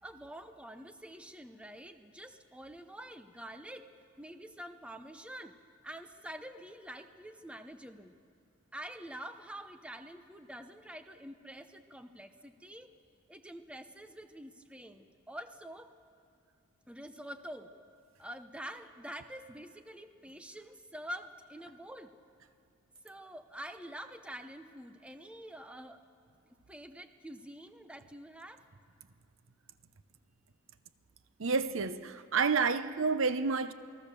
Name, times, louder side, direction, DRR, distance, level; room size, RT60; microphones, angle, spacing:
voice 1, 0.0-3.9 4.2-5.5 5.8-8.2 8.7-12.9 13.3-15.9 16.9-17.7 18.2-22.1 23.0-26.0 26.7-28.6, equal, 5° right, 0.8 m, -47 dB
voice 2, 31.4-33.7, right 5 dB, 70° right, 0.8 m, -29 dB
28.0 x 19.0 x 6.9 m
head